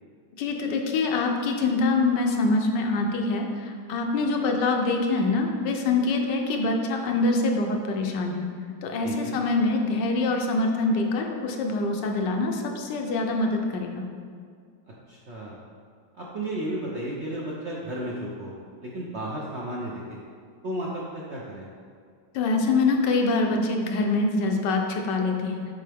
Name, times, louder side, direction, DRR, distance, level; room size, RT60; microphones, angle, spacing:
voice 1, 0.4-8.5 8.8-14.1 22.3-25.7, left 3 dB, 75° left, 3 dB, 1.3 m, -25 dB
voice 2, 9.0-9.4 15.1-15.6 16.2-18.5 18.8-20.2 20.6-21.0 21.3-21.7, right 1 dB, 60° right, -5 dB, 0.7 m, -33 dB
7.5 x 4.4 x 3.4 m, 2.1 s
omnidirectional pair, 1.9 m